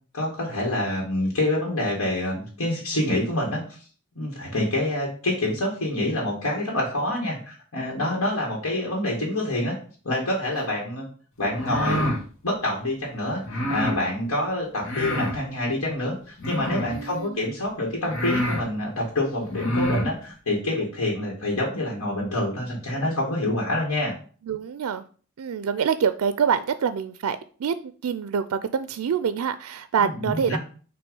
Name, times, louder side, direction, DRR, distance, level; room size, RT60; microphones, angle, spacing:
voice 1, 0.1-3.6 4.2-9.8 10.0-11.0 11.4-12.1 12.4-24.1 30.0-30.6, left 1 dB, 80° left, -2 dB, 1.9 m, -27 dB
sound 1, 11.4-12.2 13.4-14.0 14.8-15.4 16.4-17.0 17.7-17.8 18.1-18.6 19.4-20.1, equal, 60° left, 1.5 m, -27 dB
voice 2, 16.9-17.4 24.5-25.0 25.4-27.7 28.0-30.6, right 7 dB, 80° right, 12 dB, 0.4 m, -26 dB
6.2 x 3.0 x 5.3 m, 0.41 s
head